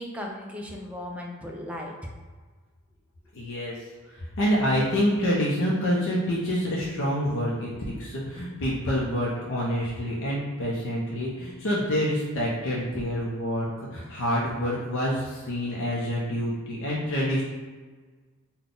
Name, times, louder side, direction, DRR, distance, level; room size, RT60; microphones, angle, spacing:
voice 1, 0.0-2.1, left 1 dB, 5° right, -1 dB, 0.4 m, -36 dB
voice 2, 3.3-3.8 4.1-17.4, equal, 60° left, -5 dB, 0.6 m, -27 dB
3.9 x 2.2 x 3.6 m, 1.4 s
head